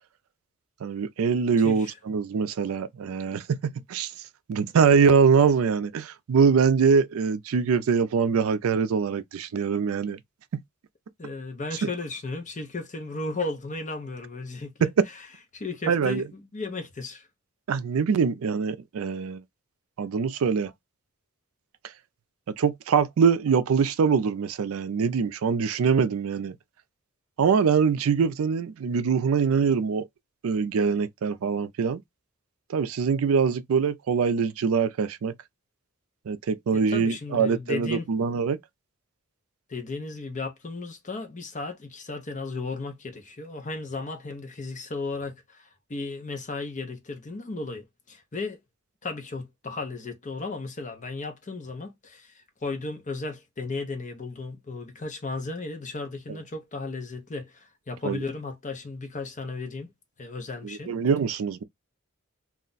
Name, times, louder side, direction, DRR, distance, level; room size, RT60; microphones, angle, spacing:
voice 1, 0.8-4.1 4.5-10.2 10.5-10.6 11.8-11.9 14.8-14.9 15.9-16.2 17.7-19.4 20.0-20.7 22.6-26.5 27.4-30.1 30.4-32.0 32.7-35.3 36.3-38.6 58.0-58.2 60.6-61.6, right 6 dB, 70° right, 0.4 m, -23 dB
voice 2, 1.6-1.9 11.2-14.9 15.5-17.3 36.7-38.1 39.7-48.6 49.0-59.9 60.2-60.9, left 3 dB, 35° left, 0.7 m, -35 dB
2.4 x 2.1 x 3.8 m
head